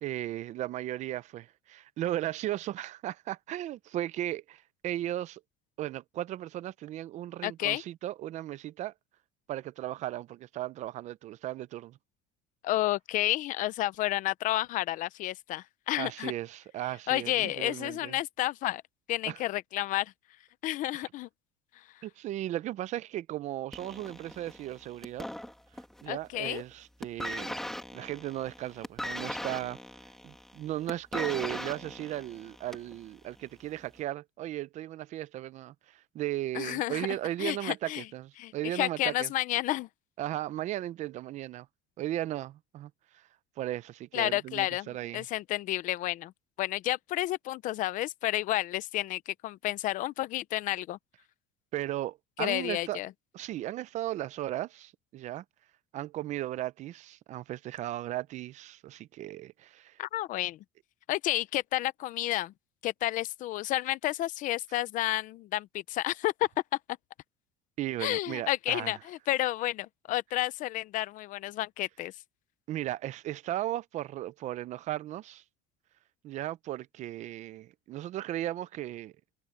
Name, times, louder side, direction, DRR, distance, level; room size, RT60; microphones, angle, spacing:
voice 1, 0.0-5.4 5.8-8.9 9.5-12.0 16.0-18.1 19.3-19.4 22.0-25.3 26.0-27.5 27.9-29.8 30.2-39.3 40.2-41.7 42.0-43.2 43.6-45.3 51.7-53.0 53.3-55.4 55.9-60.0 67.8-69.0 72.7-75.4 76.2-79.1, right 14 dB, 40° right, 0.6 m, -36 dB
voice 2, 7.4-7.8 12.6-16.3 17.1-18.8 19.1-20.1 20.6-21.3 21.8-21.9 26.1-26.6 36.5-37.1 37.4-38.0 38.4-39.9 44.1-46.3 46.6-51.0 52.4-53.1 60.0-60.6 61.1-62.5 62.8-66.5 68.0-72.1, left 15 dB, 45° left, 0.7 m, -31 dB
sound 1, 23.7-26.1 26.3-26.7 27.0-33.0 33.8-33.9, left 1 dB, ahead, 2.4 m, -39 dB
cardioid pair, 160°, 18 cm